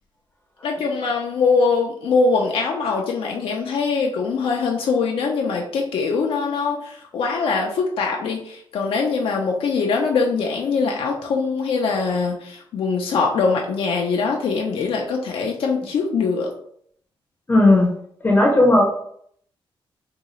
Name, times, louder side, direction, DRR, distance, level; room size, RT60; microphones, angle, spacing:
voice 1, 0.6-16.5, left 4 dB, 80° left, 0 dB, 0.5 m, -22 dB
voice 2, 17.5-17.9 18.2-18.8, left 2 dB, 20° left, 0 dB, 0.6 m, -14 dB
3.7 x 2.3 x 3.0 m, 0.66 s
wide cardioid pair, 145°, 9 cm